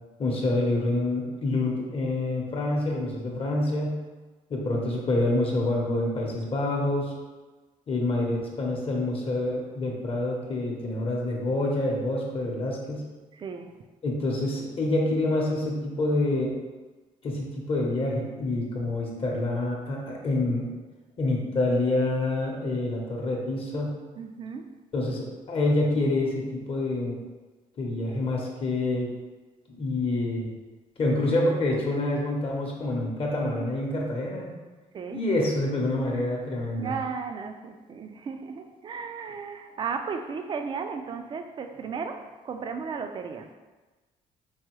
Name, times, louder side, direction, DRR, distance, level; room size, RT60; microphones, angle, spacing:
voice 1, 0.2-4.0 4.5-7.1 7.9-13.1 14.0-16.5 17.2-20.7 21.2-23.9 24.9-27.2 27.8-29.1 29.8-30.5 31.0-34.5 35.1-36.9, left 2 dB, 40° left, -1 dB, 0.8 m, -27 dB
voice 2, 13.3-13.7 24.2-24.7 34.9-35.2 36.8-43.5, right 5 dB, 35° right, 6 dB, 0.4 m, -35 dB
4.7 x 2.7 x 3.0 m, 1.3 s
cardioid pair, 125°, 15 cm